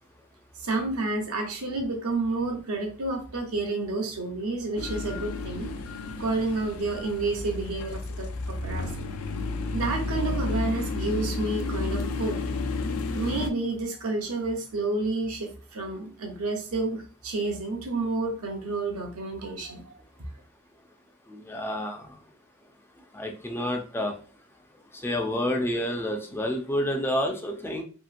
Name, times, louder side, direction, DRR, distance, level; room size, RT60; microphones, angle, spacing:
voice 1, 0.6-5.7 6.2-9.1 9.7-12.4 13.1-19.9, right 3 dB, 85° right, 3 dB, 0.8 m, -30 dB
sound 1, 4.8-13.5, left 3 dB, 75° left, 0.4 m, -31 dB
voice 2, 21.3-22.1 23.1-24.1 25.0-27.8, left 1 dB, 10° left, 3 dB, 0.3 m, -29 dB
2.8 x 2.8 x 2.4 m, 0.40 s
head